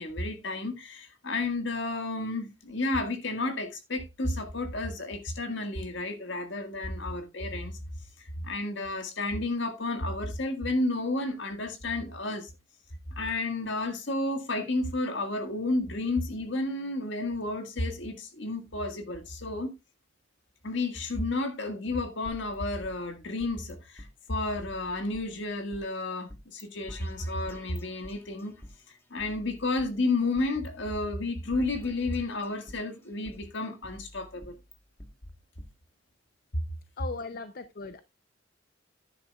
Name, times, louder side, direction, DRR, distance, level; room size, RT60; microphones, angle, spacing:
voice 1, 0.0-7.7 8.4-12.5 13.2-19.7 20.6-28.6 29.1-34.6, left 2 dB, 65° left, 1.8 m, -31 dB
sound 1, 22.3-23.7 24.0-24.1 24.6-25.8 26.3-26.6 26.9-28.7 29.2-30.7 30.9-31.0 31.5-32.9 33.3-35.1 35.6-35.7, equal, 15° left, 1.4 m, -48 dB
voice 2, 37.0-38.0, left 4 dB, 50° left, 0.6 m, -38 dB
10.5 x 9.8 x 2.4 m
head